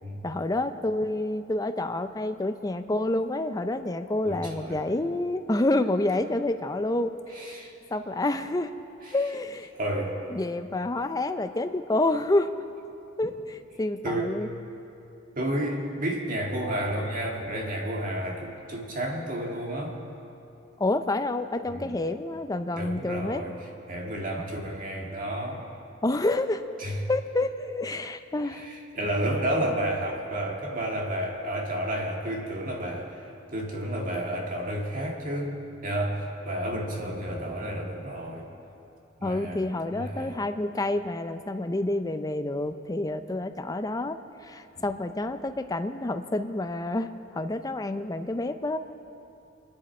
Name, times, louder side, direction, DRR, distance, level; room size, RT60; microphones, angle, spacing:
voice 1, 0.2-8.7 9.1-9.7 10.3-12.5 13.2-14.5 20.8-23.4 26.0-26.6 27.1-28.7 39.2-44.2 44.4-48.8, left 2 dB, 20° left, 9 dB, 0.5 m, -28 dB
voice 2, 4.2-4.8 7.3-7.7 9.0-9.2 9.7-10.2 14.0-14.3 15.4-20.0 21.7-22.0 22.8-25.6 26.8-27.0 28.4-35.6 35.8-38.5 39.2-40.5 44.8-44.9, right 1 dB, 45° right, 0 dB, 1.9 m, -31 dB
24.0 x 10.5 x 4.3 m, 2.7 s
head